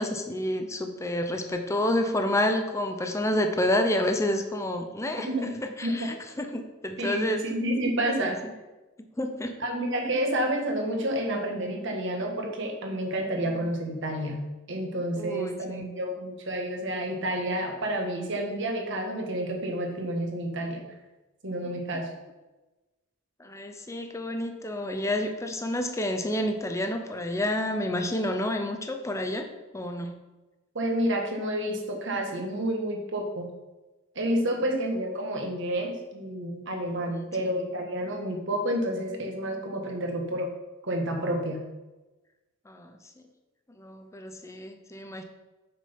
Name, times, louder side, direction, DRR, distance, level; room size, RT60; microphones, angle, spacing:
voice 1, 0.0-5.5 5.8-7.5 8.2-8.3 9.2-9.6 15.2-15.9 23.4-29.5 29.7-30.2 37.1-37.3 42.7-43.0 43.8-45.2, left 1 dB, 15° left, 5 dB, 0.6 m, -29 dB
voice 2, 7.0-8.4 9.6-14.4 14.7-20.8 21.4-22.1 30.7-33.5 34.1-40.5 40.8-41.6, right 1 dB, 60° right, 2 dB, 1.5 m, -29 dB
6.4 x 6.0 x 5.2 m, 1.1 s
head